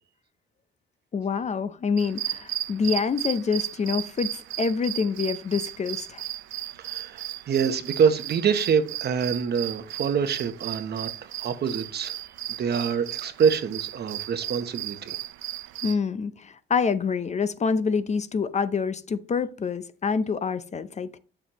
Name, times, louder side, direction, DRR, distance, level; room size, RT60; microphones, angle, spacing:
voice 1, 1.1-6.2 15.8-21.2, left 5 dB, 35° left, 0.6 m, -26 dB
sound 1, 2.0-16.0, right 13 dB, 80° right, 0.6 m, -35 dB
voice 2, 6.8-12.1 12.6-15.2, right 6 dB, 55° right, 0.9 m, -26 dB
7.1 x 6.8 x 3.0 m
cardioid pair, 90°, 20 cm